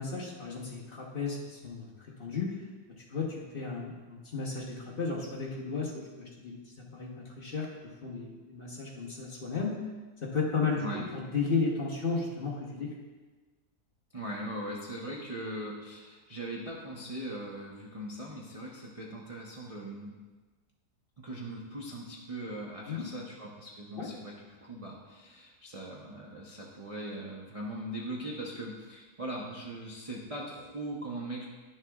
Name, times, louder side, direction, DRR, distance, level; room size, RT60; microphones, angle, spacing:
voice 1, 0.0-1.9 2.2-2.5 3.1-7.7 8.0-9.8 10.2-12.9 22.9-23.0 24.0-24.1, left 4 dB, 40° left, -3 dB, 1.0 m, -34 dB
voice 2, 14.1-20.1 21.2-24.3 24.6-31.5, right 1 dB, 40° right, -4 dB, 0.5 m, -40 dB
11.0 x 6.5 x 2.3 m, 1.3 s
omnidirectional pair, 1.8 m